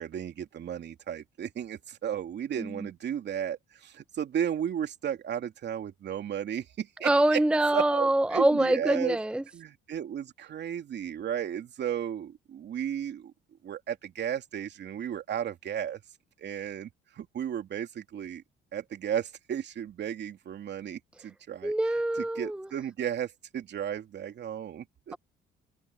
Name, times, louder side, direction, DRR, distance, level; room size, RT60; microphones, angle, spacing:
voice 1, 0.0-7.4 7.7-9.2 9.5-13.3 13.6-16.0 16.4-16.9 17.1-18.4 18.7-21.7 22.3-25.1, right 9 dB, 55° right, 2.8 m, -34 dB
voice 2, 7.0-9.4 21.6-22.7, right 1 dB, 5° right, 0.7 m, -25 dB
supercardioid pair, 65°, 21 cm